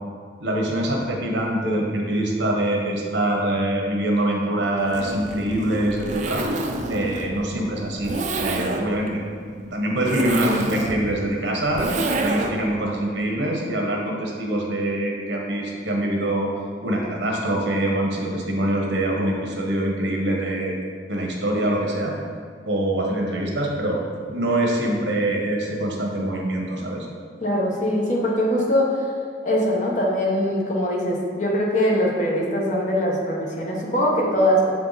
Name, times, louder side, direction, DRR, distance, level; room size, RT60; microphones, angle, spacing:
voice 1, 0.4-6.4 6.9-9.2 9.6-16.5 16.8-20.8 21.1-22.1 22.7-24.0 24.3-27.1, right 1 dB, 80° right, -1 dB, 1.2 m, -24 dB
Zipper (clothing), 4.8-12.7, right 2 dB, 45° right, 0.5 m, -28 dB
voice 2, 27.4-29.0 29.4-34.7, equal, 45° left, -2 dB, 1.1 m, -22 dB
7.2 x 4.8 x 4.0 m, 2.1 s
head